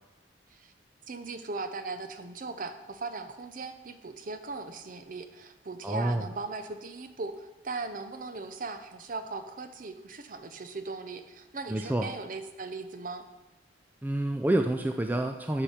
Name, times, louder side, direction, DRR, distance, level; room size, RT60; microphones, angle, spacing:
voice 1, 1.1-13.3, right 3 dB, 45° right, 9 dB, 0.7 m, -38 dB
voice 2, 5.8-6.2 11.7-12.1 14.0-15.6, right 1 dB, 10° right, 5 dB, 0.3 m, -28 dB
10.0 x 4.7 x 5.7 m, 1.1 s
head